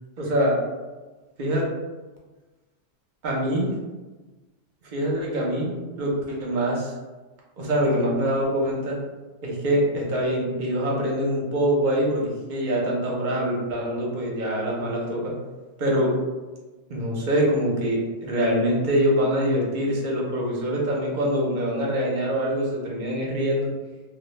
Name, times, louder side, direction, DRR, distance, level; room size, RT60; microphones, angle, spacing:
voice 1, 0.2-0.6 1.4-1.6 3.2-3.7 4.9-6.9 7.6-9.0 9.4-15.3 15.8-16.1 16.9-23.7, equal, 50° right, -3 dB, 0.6 m, -24 dB
2.1 x 2.0 x 3.0 m, 1.2 s
omnidirectional pair, 1.3 m